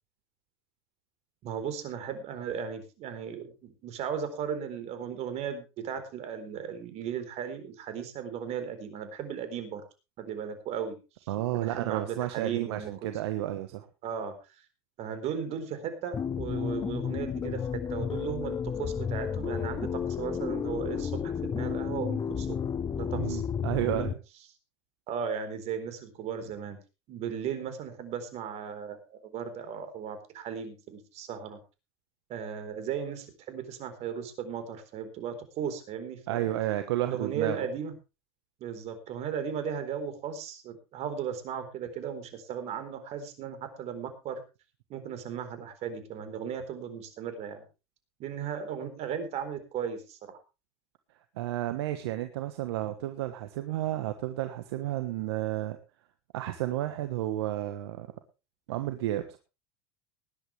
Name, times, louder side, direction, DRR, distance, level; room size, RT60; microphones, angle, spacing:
voice 1, 1.4-9.8 10.2-10.9 11.5-12.9 14.0-14.3 15.0-17.6 17.9-22.6 23.0-23.4 23.7-24.1 25.1-26.8 27.1-31.6 32.3-36.5 37.0-37.9 38.6-44.4 44.9-47.6 48.2-50.4, right 7 dB, 55° right, 9 dB, 4.1 m, -36 dB
voice 2, 11.3-13.9 23.1-24.2 36.3-37.6 51.3-55.8 56.3-58.1 58.7-59.4, right 14 dB, 75° right, 9 dB, 1.3 m, -32 dB
sound 1, 16.1-24.1, left 7 dB, 25° left, 0.8 m, -32 dB
19.5 x 11.0 x 3.3 m, 0.30 s
hypercardioid pair, 90°, 13 cm